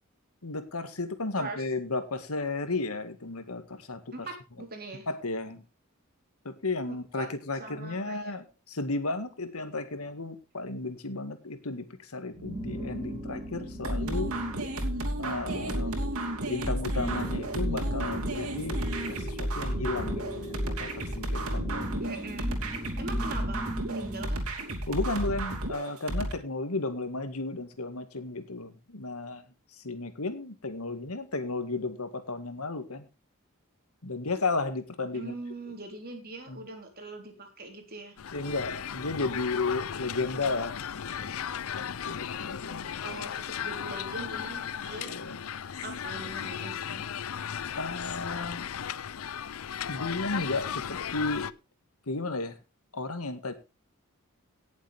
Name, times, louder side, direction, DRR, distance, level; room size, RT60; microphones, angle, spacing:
voice 1, 0.4-4.0 5.1-5.6 6.5-14.3 15.2-15.9 16.5-22.0 24.9-29.4 29.8-33.1 34.0-35.3 36.5-36.6 38.3-41.4 41.7-42.9 45.0-45.4 47.8-48.7 49.9-51.5 52.1-52.5 52.9-53.5, left 3 dB, 90° left, 10 dB, 1.8 m, -34 dB
voice 2, 4.1-5.1 6.9-7.3 7.6-8.3 22.0-22.5 23.0-24.4 35.1-38.2 43.0-45.2 45.8-47.0, right 2 dB, 45° right, 4 dB, 3.5 m, -41 dB
sound 1, 12.3-24.3, equal, 15° right, 4.5 m, -39 dB
sound 2, 13.8-26.3, right 1 dB, 85° right, 2.8 m, -32 dB
sound 3, 38.2-51.5, left 8 dB, 70° left, 0.5 m, -36 dB
18.0 x 7.3 x 3.4 m, 0.29 s
head